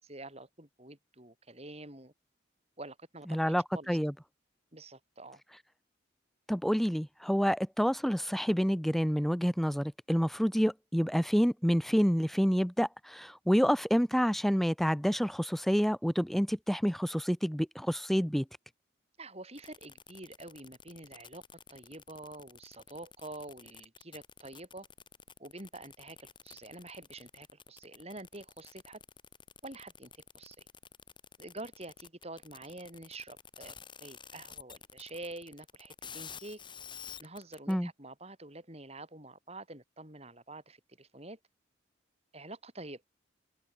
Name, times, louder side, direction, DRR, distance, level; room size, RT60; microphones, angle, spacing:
voice 1, 0.0-2.1 2.8-4.0 4.7-5.4 19.2-21.4 21.7-24.9 25.4-29.0 29.6-30.7 31.4-36.6 37.2-41.4 42.3-43.0, right 2 dB, 35° right, 7.8 m, -47 dB
voice 2, 3.3-4.1 6.5-18.4 37.7-37.9, equal, ahead, 1.6 m, -28 dB
sound 1, 19.5-37.7, left 7 dB, 25° left, 7.1 m, -50 dB
head